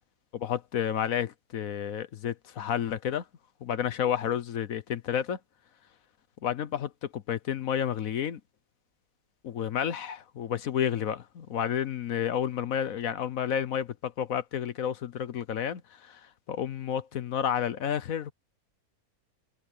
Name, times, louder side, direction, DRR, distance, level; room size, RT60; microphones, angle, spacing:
voice 1, 0.3-3.2 3.6-5.4 6.4-8.4 9.4-16.2 16.5-18.3, left 9 dB, 65° left, 1.2 m, -31 dB
omnidirectional pair, 1.6 m